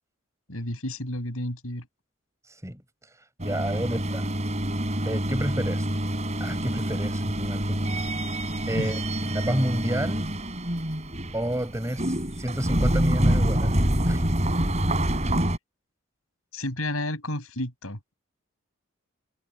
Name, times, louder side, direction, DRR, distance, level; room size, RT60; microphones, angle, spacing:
voice 1, 0.5-1.9 8.7-8.9 16.5-18.1, left 1 dB, 80° left, 7.5 m, -31 dB
voice 2, 3.4-4.3 5.0-5.9 6.4-8.1 8.7-10.3 11.3-14.3, equal, 15° right, 5.8 m, -30 dB
sound 1, 3.4-15.6, right 1 dB, 30° right, 3.9 m, -26 dB
head